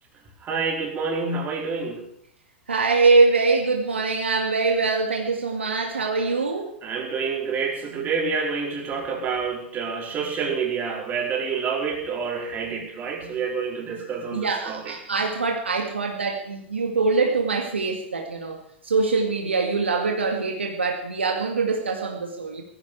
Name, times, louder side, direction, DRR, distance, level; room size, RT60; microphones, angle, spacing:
voice 1, 0.4-2.0 6.8-15.0, right 5 dB, 30° right, 0 dB, 4.9 m, -28 dB
voice 2, 2.7-6.8 14.3-18.6 18.8-22.6, right 4 dB, 85° right, 2 dB, 2.3 m, -23 dB
17.0 x 15.0 x 5.0 m, 0.71 s
figure-of-eight pair, 95°, 6 cm